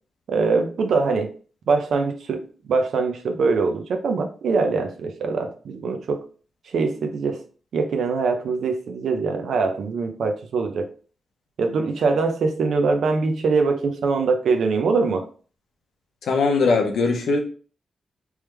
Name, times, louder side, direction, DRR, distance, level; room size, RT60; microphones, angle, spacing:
voice 1, 0.3-1.3 1.7-6.3 6.6-7.4 7.7-10.9 11.6-15.3, right 4 dB, 75° right, 6 dB, 0.6 m, -23 dB
voice 2, 16.2-17.4, left 4 dB, 80° left, 2 dB, 0.7 m, -20 dB
3.5 x 3.1 x 3.3 m, 0.41 s
wide cardioid pair, 160°, 0 cm